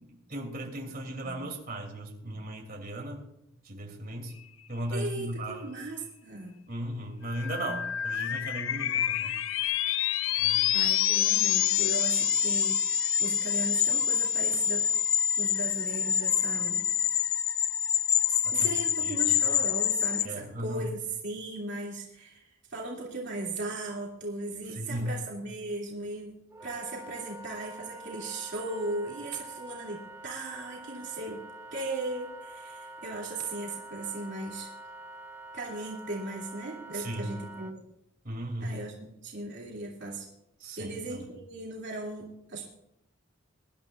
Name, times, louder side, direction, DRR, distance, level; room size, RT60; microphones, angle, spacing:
voice 1, 0.0-3.2 3.6-4.3 4.7-5.7 6.7-9.3 10.4-10.7 18.4-18.7 19.0-19.2 20.2-20.9 24.7-25.1 36.9-37.3 38.2-38.7 40.6-41.4, right 1 dB, 45° right, 0 dB, 3.0 m, -36 dB
voice 2, 4.9-6.6 10.7-14.9 15.4-16.8 18.3-31.4 31.7-34.7 35.5-37.8 38.6-40.3 40.8-42.7, right 2 dB, 60° right, -3 dB, 2.7 m, -37 dB
sound 1, 7.3-20.3, left 10 dB, 75° left, 0.5 m, -27 dB
Wind instrument woodwind instrument, 26.5-37.7, right 1 dB, 15° right, 1.0 m, -46 dB
24.0 x 12.0 x 2.5 m, 0.84 s
head